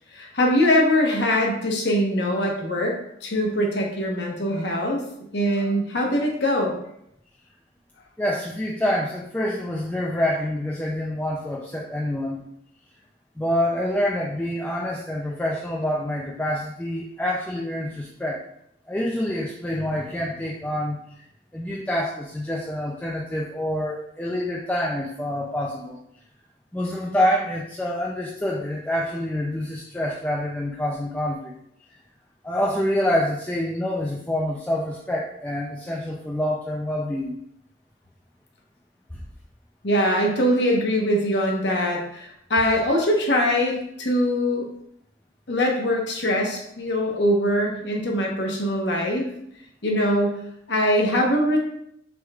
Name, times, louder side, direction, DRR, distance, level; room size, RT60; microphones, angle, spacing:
voice 1, 0.1-3.0 3.2-5.0 5.3-6.7 39.8-44.7 45.5-49.3 49.8-50.4 50.7-51.6, equal, 70° left, 0 dB, 1.0 m, -22 dB
voice 2, 8.2-12.4 13.4-18.4 18.9-21.0 21.5-26.0 26.7-31.5 32.4-37.4, left 1 dB, 10° left, -3 dB, 0.3 m, -26 dB
6.1 x 3.5 x 2.3 m, 0.76 s
head